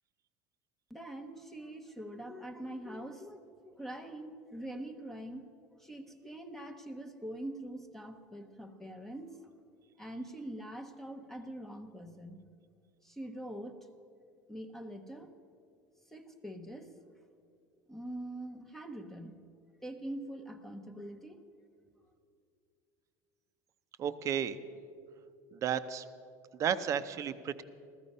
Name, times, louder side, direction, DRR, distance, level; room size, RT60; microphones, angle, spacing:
voice 1, 0.9-5.5 5.8-9.4 10.0-12.4 13.0-13.9 14.5-15.3 16.1-16.9 17.9-19.4 19.8-21.4, right 1 dB, 5° left, 5 dB, 0.8 m, -44 dB
voice 2, 24.0-24.6 25.5-26.0 26.6-27.6, right 8 dB, 35° right, 11 dB, 0.6 m, -33 dB
14.5 x 14.0 x 5.4 m, 2.4 s
cardioid pair, 135°, 9 cm